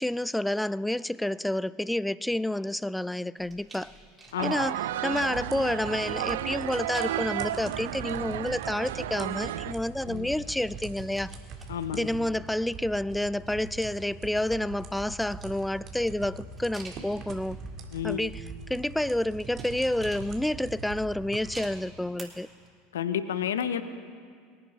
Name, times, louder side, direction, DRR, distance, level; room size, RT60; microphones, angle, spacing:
voice 1, 0.0-3.9 4.4-11.3 11.9-17.6 18.0-22.5, left 1 dB, 5° left, 0.3 m, -29 dB
sound 1, 3.4-5.5 6.9-7.4 8.4-9.7 10.0-12.5 12.8-13.9 14.4-17.6 18.2-18.6 19.4-20.7 21.5-22.2 22.6-22.7, right 3 dB, 15° right, 3.5 m, -51 dB
voice 2, 4.3-4.7 10.1-10.3 11.7-12.1 17.9-18.3 22.9-23.8, left 9 dB, 75° left, 0.7 m, -31 dB
sound 2, 4.4-9.7, right 13 dB, 70° right, 0.4 m, -33 dB
sound 3, 5.1-21.8, right 4 dB, 45° right, 2.0 m, -43 dB
22.0 x 10.0 x 5.7 m
hypercardioid pair, 80°, 0 cm